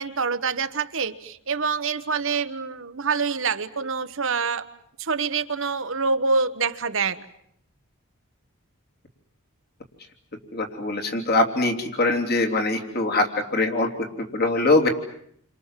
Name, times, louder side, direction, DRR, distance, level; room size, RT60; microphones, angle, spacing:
voice 1, 0.0-4.7 5.0-7.2, right 5 dB, 60° right, 10 dB, 1.2 m, -26 dB
voice 2, 10.5-14.9, left 2 dB, 45° left, 2 dB, 3.3 m, -23 dB
29.5 x 25.5 x 7.5 m, 0.70 s
head